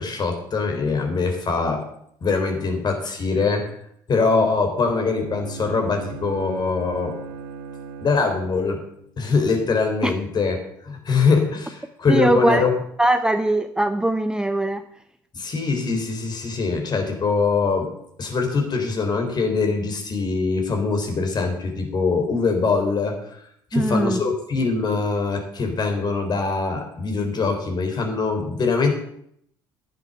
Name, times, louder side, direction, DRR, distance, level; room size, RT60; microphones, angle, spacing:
voice 1, 0.0-1.8 2.2-3.7 4.1-7.1 8.0-8.8 9.2-10.6 10.8-12.7 15.3-17.9 18.2-23.4 23.7-28.9, left 4 dB, 40° left, 4 dB, 3.8 m, -23 dB
Bowed string instrument, 4.9-9.0, right 5 dB, 65° right, 3.1 m, -37 dB
voice 2, 12.1-12.7 13.0-14.8 23.7-24.2, right 1 dB, 5° right, 10 dB, 0.8 m, -20 dB
12.0 x 9.2 x 6.7 m, 0.70 s
hypercardioid pair, 60°, 11 cm